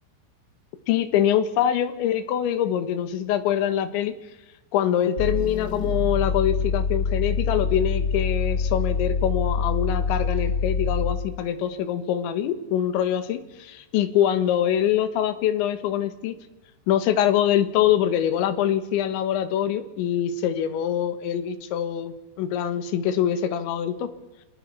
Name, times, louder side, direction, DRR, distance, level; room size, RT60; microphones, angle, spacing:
voice 1, 0.9-4.1 4.7-16.4 16.9-24.1, left 10 dB, 85° left, 10 dB, 3.7 m, -24 dB
sound 1, 5.2-11.3, left 4 dB, 30° left, 2.2 m, -25 dB
27.5 x 19.0 x 5.5 m, 1.0 s
omnidirectional pair, 5.3 m